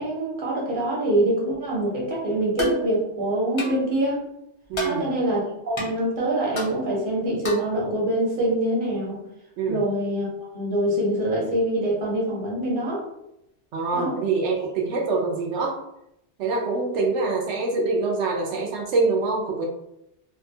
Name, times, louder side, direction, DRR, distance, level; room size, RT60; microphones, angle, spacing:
voice 1, 0.0-4.2 4.8-9.2 9.7-13.0 13.9-14.1, right 1 dB, 50° right, -3 dB, 1.0 m, -25 dB
sound 1, 2.6-2.8 3.6-3.8 4.7-5.0 5.8-5.9 6.6-6.7 7.4-7.7, left 2 dB, 40° left, 0.4 m, -29 dB
voice 2, 4.7-5.1 9.6-9.8 13.7-15.8 16.4-19.6, right 3 dB, 90° right, -1 dB, 0.9 m, -25 dB
2.7 x 2.2 x 2.6 m, 0.82 s
omnidirectional pair, 1.2 m